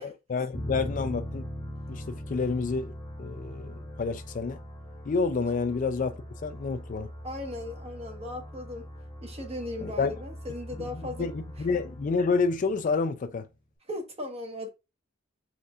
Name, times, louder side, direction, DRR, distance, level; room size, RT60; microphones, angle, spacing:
voice 1, 0.0-1.4 1.9-2.9 3.2-4.6 5.0-7.1 9.8-10.1 10.8-13.5, left 4 dB, 40° left, 0.4 m, -29 dB
sound 1, 0.5-13.2, equal, 20° left, 1.0 m, -41 dB
voice 2, 7.2-8.8 9.2-11.3 13.9-14.7, left 1 dB, 30° right, 1.2 m, -37 dB
4.2 x 3.8 x 2.4 m
head